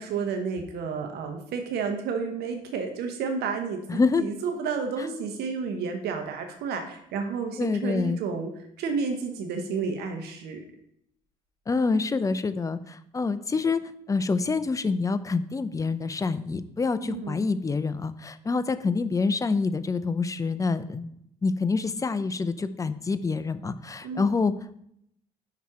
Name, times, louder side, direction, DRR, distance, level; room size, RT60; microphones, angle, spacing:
voice 1, 0.0-8.5 8.8-10.6 17.1-17.4 24.0-24.3, right 5 dB, 80° right, 5 dB, 0.9 m, -31 dB
voice 2, 3.9-4.2 7.6-8.2 11.7-13.8 14.1-21.2 21.4-24.5, left 4 dB, 20° left, 13 dB, 0.4 m, -26 dB
5.8 x 4.2 x 4.8 m, 0.73 s
cardioid pair, 85°, 16 cm